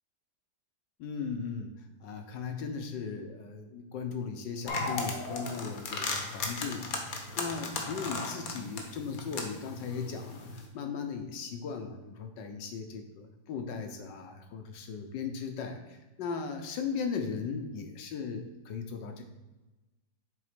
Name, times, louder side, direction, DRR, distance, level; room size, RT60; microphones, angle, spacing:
voice 1, 1.0-19.2, left 5 dB, 75° left, 5 dB, 1.5 m, -37 dB
sound 1, 4.7-10.7, left 3 dB, 55° left, 1.3 m, -36 dB
7.3 x 3.7 x 5.1 m, 1.1 s
omnidirectional pair, 2.0 m